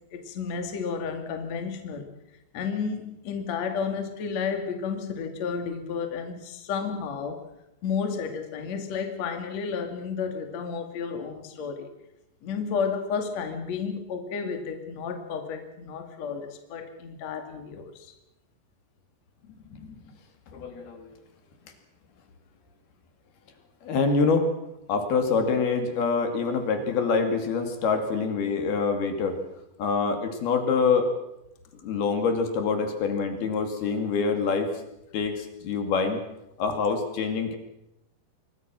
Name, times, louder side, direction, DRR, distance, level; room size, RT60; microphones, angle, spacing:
voice 1, 0.1-2.1 2.5-7.4 7.8-11.9 12.4-18.1, left 6 dB, 45° left, 6 dB, 3.0 m, -32 dB
voice 2, 20.5-21.1 23.8-24.5 24.9-29.4 29.8-31.1 31.8-34.7 35.1-36.2 36.6-37.6, left 4 dB, 65° left, 6 dB, 4.1 m, -25 dB
26.0 x 22.5 x 6.1 m, 0.87 s
omnidirectional pair, 5.1 m